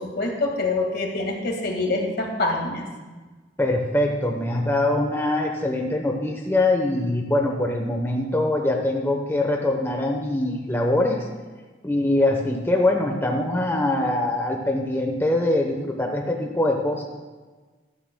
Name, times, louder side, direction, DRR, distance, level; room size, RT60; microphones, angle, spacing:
voice 1, 0.0-2.9, left 2 dB, 60° left, 2 dB, 1.9 m, -25 dB
voice 2, 3.6-11.3 11.8-17.0, left 1 dB, 15° left, 1 dB, 0.9 m, -23 dB
15.0 x 13.0 x 2.2 m, 1.3 s
head